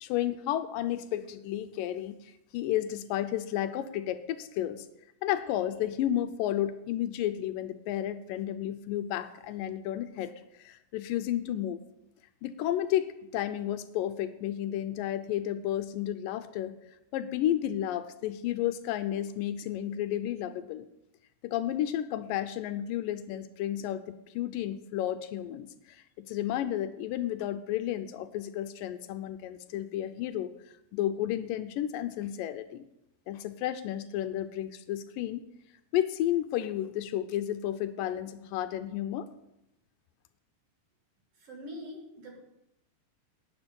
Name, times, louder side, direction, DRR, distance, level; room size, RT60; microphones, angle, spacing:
voice 1, 0.0-4.9 5.2-10.3 10.6-11.8 12.4-16.7 17.1-20.9 21.4-30.5 30.9-32.8 33.3-35.4 35.9-39.3, left 12 dB, 80° left, 10 dB, 2.1 m, -32 dB
voice 2, 41.3-42.4, equal, 45° right, 0 dB, 3.0 m, -43 dB
11.5 x 9.3 x 5.3 m, 0.84 s
omnidirectional pair, 4.2 m